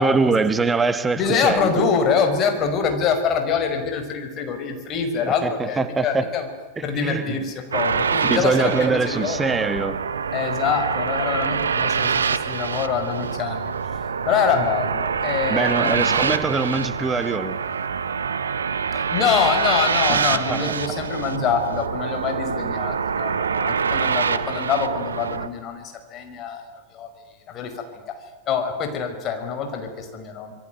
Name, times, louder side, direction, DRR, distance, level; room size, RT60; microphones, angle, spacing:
voice 1, 0.0-1.9 5.2-6.2 6.8-7.2 8.3-10.0 15.5-17.6 20.1-20.6, right 4 dB, 15° right, 13 dB, 1.7 m, -23 dB
voice 2, 1.2-6.5 6.8-9.5 10.3-13.7 14.2-16.4 18.9-27.1 27.5-28.2 28.5-30.5, left 6 dB, 30° left, 6 dB, 5.3 m, -25 dB
sound 1, 7.7-25.5, right 6 dB, 70° right, 1.1 m, -25 dB
27.0 x 23.5 x 9.3 m, 1.2 s
figure-of-eight pair, 90°, 0 cm